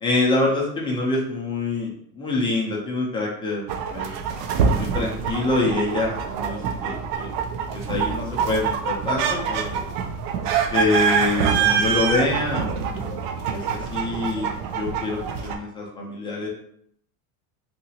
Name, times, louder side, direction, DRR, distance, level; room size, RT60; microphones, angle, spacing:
voice 1, 0.0-3.6 3.9-4.1 4.7-7.4 7.7-9.8 10.7-13.2 13.5-16.5, left 2 dB, 10° left, -3 dB, 0.3 m, -26 dB
sound 1, 3.7-15.6, right 6 dB, 65° right, 0.5 m, -25 dB
2.8 x 2.4 x 2.7 m, 0.69 s
supercardioid pair, 140°, 46 cm